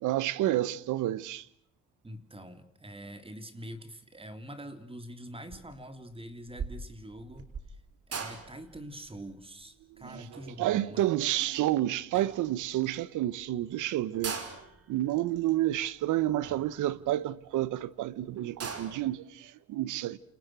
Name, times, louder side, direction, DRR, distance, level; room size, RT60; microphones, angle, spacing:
voice 1, 0.0-1.4 10.0-10.2 10.6-14.4 14.9-20.2, right 14 dB, 90° right, 1.2 m, -30 dB
voice 2, 2.0-7.5 8.1-11.1, equal, 20° right, 3.4 m, -45 dB
sound 1, 5.5-5.8 6.1-11.7 12.1-12.9 13.3-13.4 13.6-13.7 14.0-17.6 18.0-18.1 18.4-19.1, right 5 dB, 50° right, 5.7 m, -42 dB
29.5 x 29.0 x 6.3 m
cardioid pair, 90°, 30 cm